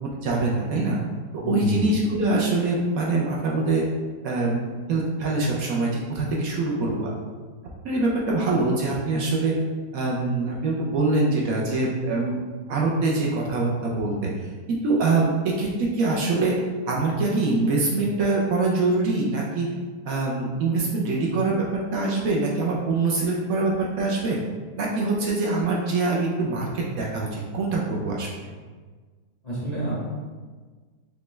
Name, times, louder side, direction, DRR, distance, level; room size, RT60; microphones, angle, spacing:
voice 1, 0.0-1.0 1.3-3.8 4.2-7.1 7.8-9.5 9.9-12.4 12.7-19.7 20.0-21.7 21.9-23.7 24.0-24.4 24.8-28.5, right 3 dB, 70° right, -3 dB, 1.0 m, -24 dB
voice 2, 1.4-1.9 29.4-30.0, right 1 dB, 35° left, -8 dB, 0.6 m, -27 dB
5.1 x 2.2 x 3.1 m, 1.4 s
omnidirectional pair, 1.7 m